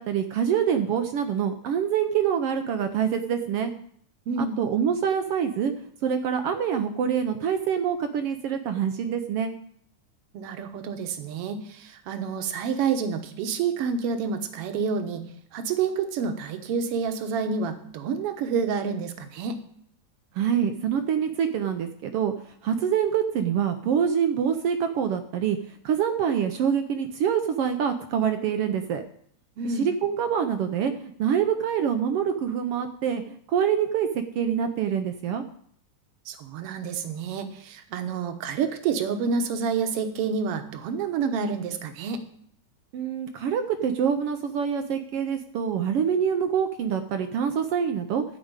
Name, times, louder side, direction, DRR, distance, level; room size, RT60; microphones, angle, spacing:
voice 1, 0.0-3.7 4.4-5.7 6.0-9.5 20.3-22.3 22.6-25.6 25.8-29.0 29.6-35.4 42.9-48.2, right 8 dB, 80° right, 8 dB, 1.3 m, -25 dB
voice 2, 4.3-4.6 10.3-15.2 15.5-19.6 29.6-29.9 36.3-42.2, right 5 dB, 60° right, 7 dB, 1.8 m, -28 dB
13.5 x 5.1 x 8.8 m, 0.64 s
omnidirectional pair, 3.5 m